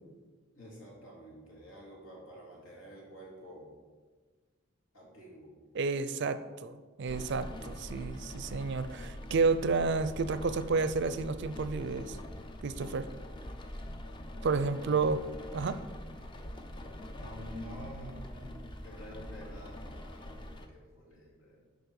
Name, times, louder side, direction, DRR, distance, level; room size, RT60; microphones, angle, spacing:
voice 1, 0.5-3.8 4.9-5.5 14.7-14.9 17.2-21.7, equal, 75° left, -3 dB, 2.5 m, -49 dB
voice 2, 5.7-12.2 12.6-13.1 14.4-15.2 15.5-15.8, right 4 dB, 55° right, 12 dB, 0.4 m, -31 dB
Rain, 7.1-20.7, left 1 dB, 25° left, 0.6 m, -44 dB
10.5 x 4.1 x 4.8 m, 1.4 s
head